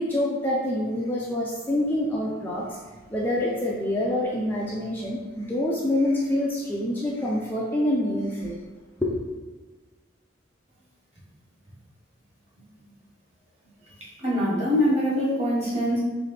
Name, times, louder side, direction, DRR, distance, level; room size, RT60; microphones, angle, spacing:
voice 1, 0.0-2.8 3.1-8.6 9.0-9.2, left 1 dB, 10° left, -5 dB, 0.4 m, -26 dB
voice 2, 14.2-16.0, equal, 35° right, -6 dB, 1.5 m, -23 dB
3.3 x 3.1 x 4.1 m, 1.3 s
head